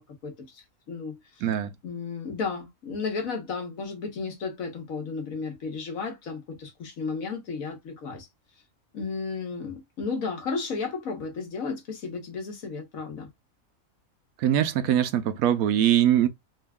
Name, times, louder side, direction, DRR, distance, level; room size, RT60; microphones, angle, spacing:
voice 1, 0.0-1.4 1.8-8.3 8.9-13.3, left 4 dB, 75° left, 1.6 m, -33 dB
voice 2, 1.4-1.7 14.4-16.3, right 11 dB, 90° right, 1.1 m, -22 dB
3.8 x 2.3 x 3.5 m
omnidirectional pair, 1.5 m